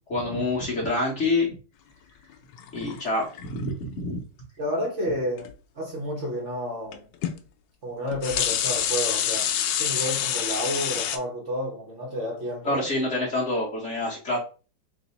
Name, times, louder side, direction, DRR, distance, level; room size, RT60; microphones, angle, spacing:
voice 1, 0.1-1.5 2.7-4.2 12.6-14.4, left 2 dB, 45° left, 1.0 m, -27 dB
sound 1, 2.5-3.6 5.4-5.5 6.9-7.0 7.2-7.4 8.0-11.2, left 9 dB, 75° left, 1.2 m, -27 dB
voice 2, 4.6-7.1 7.8-9.5 9.8-12.8, equal, 45° right, 1.3 m, -30 dB
3.8 x 2.7 x 4.0 m
omnidirectional pair, 2.1 m